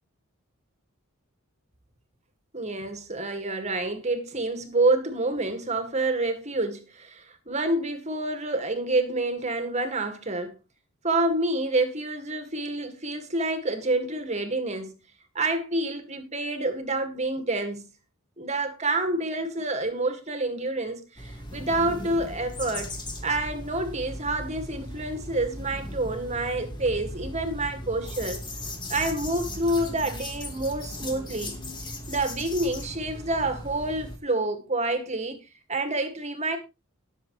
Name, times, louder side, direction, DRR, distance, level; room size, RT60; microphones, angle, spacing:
voice 1, 2.5-10.6 11.0-14.9 15.4-17.8 18.4-23.0 23.2-28.4 28.9-31.6 32.1-35.4 35.7-36.6, right 2 dB, 30° right, 2.0 m, -28 dB
sound 1, 21.2-34.2, left 1 dB, 20° left, 2.0 m, -37 dB
19.5 x 7.2 x 3.2 m
head